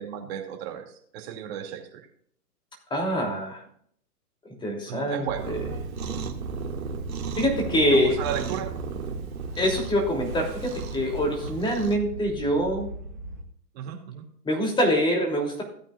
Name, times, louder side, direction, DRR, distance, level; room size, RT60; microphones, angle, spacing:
voice 1, 0.0-2.0 4.9-5.5 7.9-8.7 11.5-11.6 13.7-14.2, right 9 dB, 40° right, 3 dB, 2.6 m, -34 dB
voice 2, 2.9-3.6 4.6-5.6 7.4-8.2 9.6-12.9 14.4-15.6, equal, 10° left, 1 dB, 3.1 m, -25 dB
sound 1, 5.2-13.4, right 1 dB, 15° right, 0.3 m, -38 dB
Cat, 5.4-12.0, right 6 dB, 65° right, 2.2 m, -35 dB
17.0 x 8.8 x 2.5 m, 0.64 s
hypercardioid pair, 125°, 46 cm